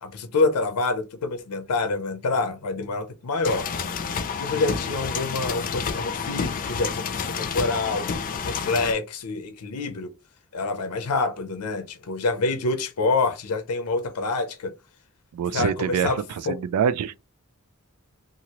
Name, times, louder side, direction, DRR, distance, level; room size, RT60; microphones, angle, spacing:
voice 1, 0.0-3.7 4.4-8.1 8.4-10.1 10.5-14.8 15.5-16.6, left 3 dB, 90° left, 0.6 m, -27 dB
sound 1, 3.4-8.9, left 5 dB, 40° left, 0.4 m, -29 dB
voice 2, 15.3-17.1, right 7 dB, 85° right, 0.3 m, -25 dB
2.8 x 2.5 x 2.9 m
head